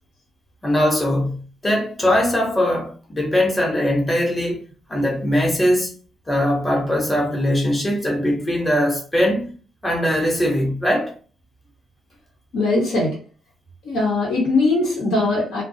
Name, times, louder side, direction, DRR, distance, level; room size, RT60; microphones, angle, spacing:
voice 1, 0.6-4.6 4.9-5.9 6.3-9.4 9.8-11.1, left 1 dB, 20° left, 0.9 m, -20 dB
voice 2, 12.5-13.2 13.8-15.6, left 2 dB, 75° left, 1.2 m, -20 dB
2.3 x 2.1 x 2.7 m
cardioid pair, 90°, 0 cm